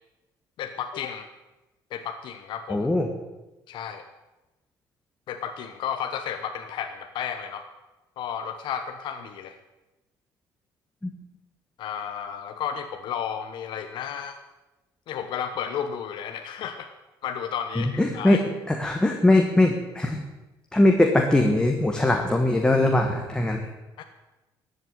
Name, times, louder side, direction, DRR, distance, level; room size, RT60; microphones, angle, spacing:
voice 1, 0.6-1.3 1.9-2.9 3.7-4.0 5.3-7.6 8.2-9.6 11.8-14.3 15.1-16.9 17.2-18.4 24.0-24.1, left 8 dB, 70° left, 6 dB, 1.0 m, -33 dB
voice 2, 2.7-3.1 11.0-11.1 17.7-18.4 18.7-20.2 20.7-23.7, left 1 dB, 10° left, 2 dB, 1.5 m, -21 dB
14.0 x 7.8 x 9.4 m, 1.1 s
cardioid pair, 125°, 9 cm